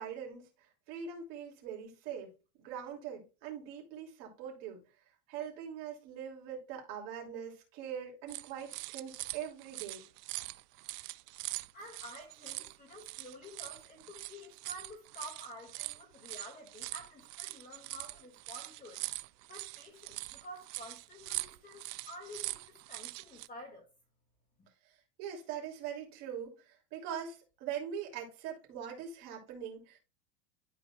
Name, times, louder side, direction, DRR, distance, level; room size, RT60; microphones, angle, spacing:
voice 1, 0.0-2.3 2.6-4.8 5.3-10.0 24.8-30.0, right 8 dB, 45° right, 2.9 m, -42 dB
sound 1, 8.3-23.5, right 20 dB, 85° right, 0.6 m, -43 dB
voice 2, 11.7-19.0 19.5-23.9, left 1 dB, 20° left, 2.3 m, -50 dB
12.0 x 4.1 x 2.4 m
supercardioid pair, 160°, 46 cm